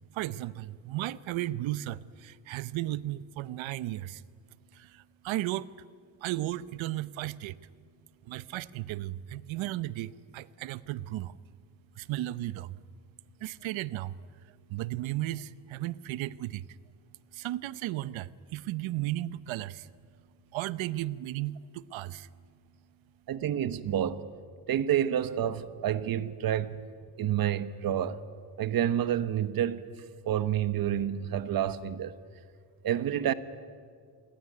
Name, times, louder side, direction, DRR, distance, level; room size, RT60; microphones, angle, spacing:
voice 1, 0.1-4.2 4.7-5.7 6.2-7.6 8.3-11.3 12.0-12.8 13.4-14.2 14.7-16.7 17.3-19.9 20.5-22.3, right 15 dB, 80° right, 0.9 m, -35 dB
voice 2, 23.3-24.3 24.7-26.8 27.2-28.2 28.6-29.8 30.2-32.2 32.8-33.3, right 10 dB, 50° right, 1.1 m, -29 dB
28.0 x 22.0 x 9.5 m
cardioid pair, 155°, 46 cm